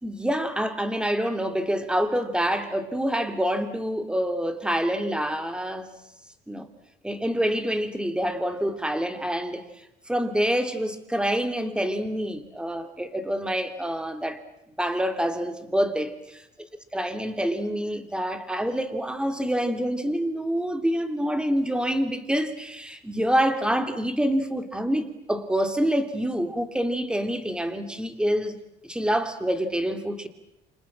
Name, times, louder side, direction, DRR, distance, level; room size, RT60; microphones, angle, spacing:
voice 1, 0.0-5.9 6.5-6.7 7.0-9.6 10.1-14.4 14.8-16.4 16.9-28.6 28.9-30.3, equal, 5° right, 3.1 m, -26 dB
29.5 x 26.5 x 7.6 m
cardioid pair, 110°, 17 cm